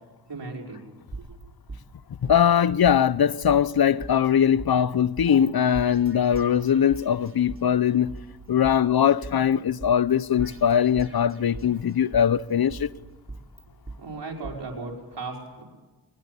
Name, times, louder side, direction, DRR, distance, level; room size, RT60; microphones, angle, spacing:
voice 1, 0.3-0.8 1.1-1.3 14.0-15.6, right 3 dB, 85° right, 5.5 m, -36 dB
sound 1, 1.1-2.6 2.8-3.0 3.4-4.7 5.2-5.5 5.7-7.6 8.1-9.5 9.8-9.9 10.4-11.7 12.1-14.0 14.4-14.5, right 3 dB, 30° right, 3.2 m, -41 dB
voice 2, 2.2-8.2 8.5-12.9, left 8 dB, 60° left, 0.8 m, -21 dB
23.0 x 21.0 x 8.4 m
wide cardioid pair, 55°, 41 cm